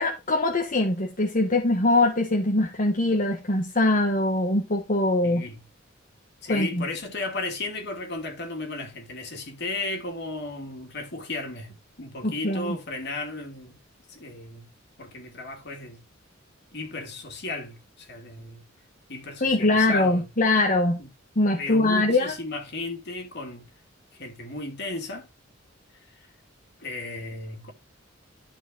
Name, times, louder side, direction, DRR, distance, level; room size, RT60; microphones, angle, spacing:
voice 1, 0.0-5.4 6.5-6.8 12.2-12.8 19.4-21.0 21.4-22.3, left 2 dB, 45° left, 1.3 m, -22 dB
voice 2, 5.2-5.6 6.4-13.8 14.1-14.7 15.0-16.0 16.7-18.6 19.1-20.2 21.0-21.1 21.6-23.7 24.2-25.3 26.8-27.7, left 2 dB, 60° left, 2.6 m, -35 dB
12.0 x 5.0 x 3.9 m
head